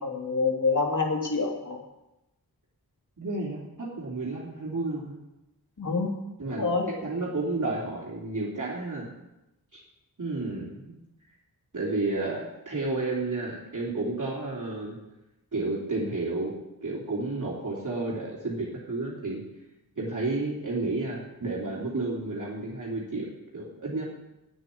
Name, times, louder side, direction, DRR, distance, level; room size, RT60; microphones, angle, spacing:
voice 1, 0.0-1.8 5.8-6.1 6.6-6.8, left 4 dB, 55° left, 0 dB, 3.0 m, -26 dB
voice 2, 3.2-5.2 6.4-9.1 9.7-9.8 10.2-11.0 11.7-15.0 15.5-19.4 20.0-24.1, right 2 dB, 55° right, -5 dB, 3.3 m, -31 dB
9.2 x 9.2 x 8.3 m, 0.94 s
wide cardioid pair, 90°, 37 cm